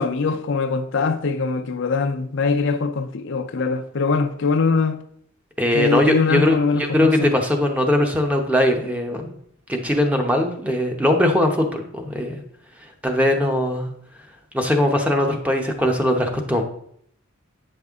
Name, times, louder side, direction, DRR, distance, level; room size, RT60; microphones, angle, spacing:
voice 1, 0.0-5.0 5.7-7.3, left 4 dB, 60° left, 0.5 m, -22 dB
voice 2, 5.6-9.3 9.7-12.3 13.0-13.9 14.5-16.6, left 1 dB, 5° right, 0.8 m, -20 dB
8.6 x 5.4 x 3.6 m
head